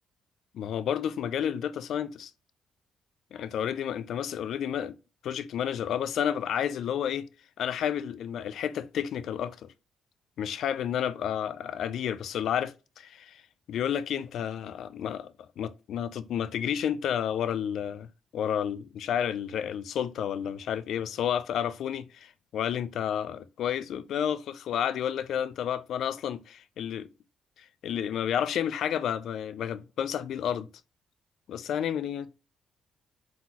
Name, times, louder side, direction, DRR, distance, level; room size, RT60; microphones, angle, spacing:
voice 1, 0.5-2.3 3.3-5.0 5.2-7.3 7.6-9.7 10.4-13.4 13.7-18.1 18.3-27.1 27.8-30.7 31.5-32.3, left 9 dB, 70° left, 0.4 m, -31 dB
4.0 x 3.9 x 2.8 m
cardioid pair, 90°, 0 cm